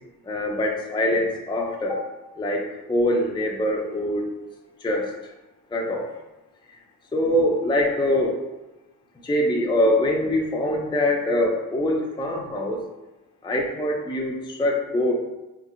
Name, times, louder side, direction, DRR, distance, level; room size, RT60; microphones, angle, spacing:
voice 1, 0.2-2.0 2.4-4.3 4.8-5.1 5.7-6.1 6.7-6.8 7.1-8.4 9.2-12.8 13.4-15.1, left 1 dB, 10° left, 0 dB, 0.6 m, -23 dB
3.0 x 2.8 x 2.5 m, 1.1 s
supercardioid pair, 45°, 40 cm